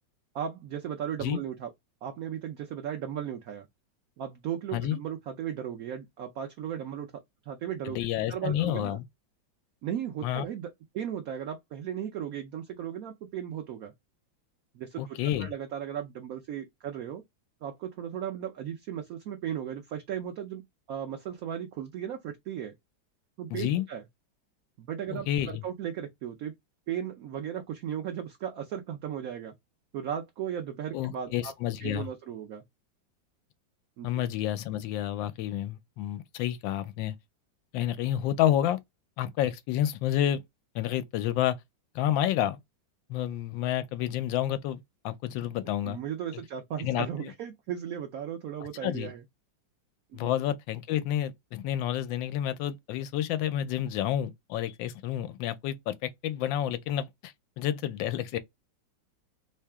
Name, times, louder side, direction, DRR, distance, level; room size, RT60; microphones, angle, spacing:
voice 1, 0.3-1.7 2.0-3.7 4.2-7.1 7.5-8.0 8.3-9.0 9.8-13.9 14.7-17.2 17.6-20.6 20.9-22.7 23.4-24.0 24.8-26.5 26.9-29.5 29.9-31.5 31.8-32.6 34.0-34.1 45.8-49.2 50.1-50.3, right 9 dB, 65° right, 0.9 m, -36 dB
voice 2, 7.9-9.0 10.2-10.5 15.0-15.5 23.5-23.8 25.1-25.6 30.9-32.1 34.0-37.1 37.7-38.8 39.2-40.4 40.7-41.6 41.9-42.6 43.1-46.0 46.8-47.3 48.8-49.1 50.1-58.4, left 11 dB, 85° left, 1.3 m, -29 dB
3.2 x 2.8 x 3.4 m
omnidirectional pair, 2.0 m